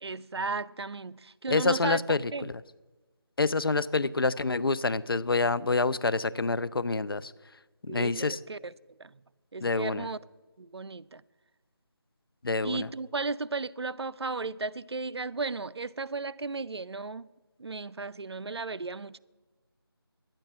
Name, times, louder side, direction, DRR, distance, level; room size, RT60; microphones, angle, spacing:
voice 1, 0.0-2.0 2.3-2.5 7.9-8.7 9.0-9.1 9.5-10.2 10.6-11.2 12.6-17.3 17.6-19.2, right 3 dB, 80° right, 0.4 m, -35 dB
voice 2, 1.5-2.5 3.4-7.3 7.8-8.4 9.6-10.1 12.4-12.9, left 3 dB, 60° left, 0.4 m, -27 dB
12.0 x 9.0 x 5.8 m
figure-of-eight pair, 165°, 13 cm